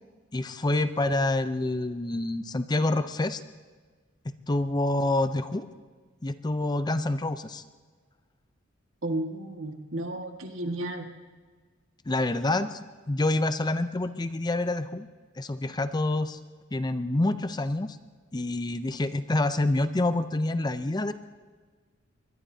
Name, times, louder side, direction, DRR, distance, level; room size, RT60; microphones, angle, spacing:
voice 1, 0.3-3.4 4.2-5.7 6.2-7.6 12.1-15.1 15.4-16.4 16.7-18.0 18.3-21.1, left 2 dB, 20° left, 11 dB, 0.5 m, -27 dB
voice 2, 9.0-11.1, right 1 dB, 70° right, 4 dB, 1.7 m, -33 dB
23.0 x 21.5 x 2.8 m, 1.4 s
head